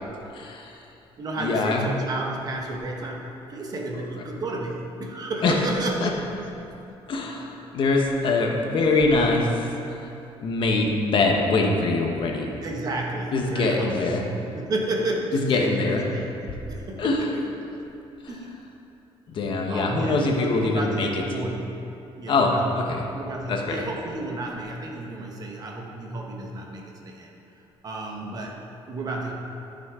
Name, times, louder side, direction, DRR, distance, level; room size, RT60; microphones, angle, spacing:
voice 1, 0.3-0.7 1.4-1.9 5.4-5.6 6.0-6.1 7.1-9.6 10.4-12.5 13.3-14.2 15.3-16.0 17.0-17.3 19.3-21.1 22.3-23.0 23.5-23.8, left 3 dB, 50° left, 1 dB, 1.1 m, -23 dB
voice 2, 1.2-6.5 7.0-7.1 8.7-8.8 12.6-14.2 14.5-16.3 16.7-17.3 18.3-18.5 19.7-21.8 22.2-22.7 23.1-27.3 27.8-28.6 28.9-29.3, right 2 dB, 40° right, 0 dB, 1.1 m, -32 dB
13.0 x 6.2 x 3.7 m, 2.8 s
cardioid pair, 145°, 11 cm